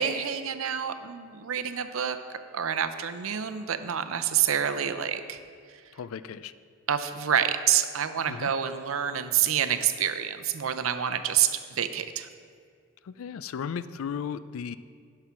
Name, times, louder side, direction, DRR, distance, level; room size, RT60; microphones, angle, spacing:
voice 1, 0.0-5.4 6.9-12.3, right 9 dB, 80° right, 9 dB, 0.6 m, -28 dB
voice 2, 5.9-6.5 8.3-8.5 13.0-14.8, left 7 dB, 90° left, 14 dB, 0.4 m, -35 dB
11.0 x 5.8 x 5.8 m, 2.1 s
head